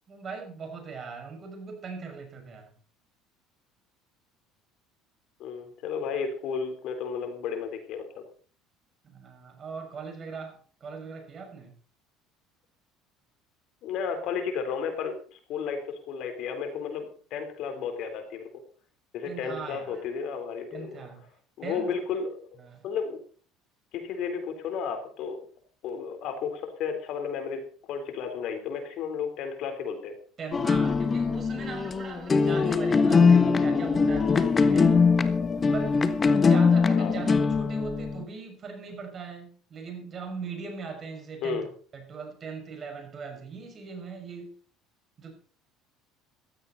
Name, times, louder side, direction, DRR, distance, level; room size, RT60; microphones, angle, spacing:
voice 1, 0.1-2.7 9.0-11.7 19.2-20.0 20.7-21.3 21.6-22.0 22.6-22.9 30.4-35.0 35.7-36.0 36.4-41.7 41.9-44.5 45.2-45.3, right 5 dB, 40° right, 4 dB, 6.3 m, -40 dB
voice 2, 5.4-8.0 13.8-18.5 19.1-21.0 21.6-23.2 23.9-25.4 25.8-27.6 27.9-30.2 36.9-37.1 41.4-41.7, left 6 dB, 65° left, 6 dB, 3.9 m, -33 dB
sound 1, 30.5-38.2, left 5 dB, 30° left, 1.4 m, -22 dB
16.0 x 13.5 x 4.2 m, 0.43 s
supercardioid pair, 95°, 0 cm